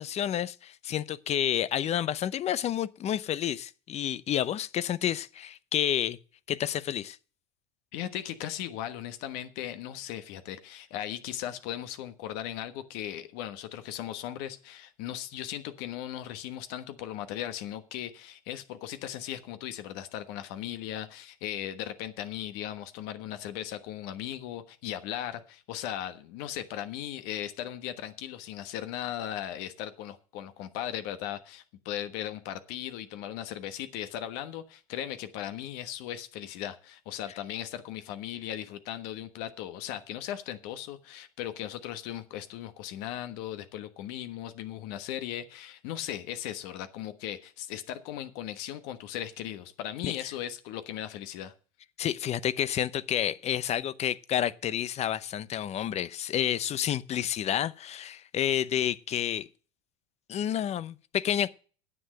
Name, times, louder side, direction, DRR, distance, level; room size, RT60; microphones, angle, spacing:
voice 1, 0.0-6.2 6.5-7.2 50.0-50.3 52.0-59.5 60.3-61.5, left 10 dB, 40° left, 0.7 m, -30 dB
voice 2, 7.9-51.5, left 11 dB, 65° left, 1.3 m, -37 dB
9.8 x 7.6 x 7.7 m
hypercardioid pair, 95°, 18 cm